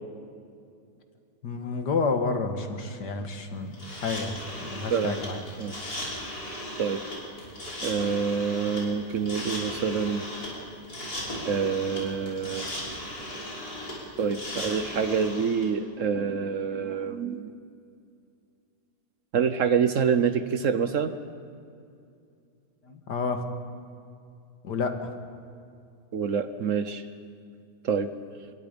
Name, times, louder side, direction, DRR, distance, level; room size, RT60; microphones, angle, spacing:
voice 1, 1.4-5.4 22.8-23.4 24.6-25.1, left 4 dB, 80° left, 6 dB, 2.3 m, -30 dB
sound 1, 3.7-15.6, left 1 dB, 60° left, 6.5 m, -37 dB
voice 2, 4.9-5.3 5.6-5.8 6.8-7.0 7.8-10.2 11.5-12.7 14.2-17.5 19.3-21.1 26.1-27.0 27.8-28.1, right 6 dB, 55° right, 11 dB, 1.1 m, -26 dB
27.0 x 22.5 x 5.3 m, 2.4 s
omnidirectional pair, 1.8 m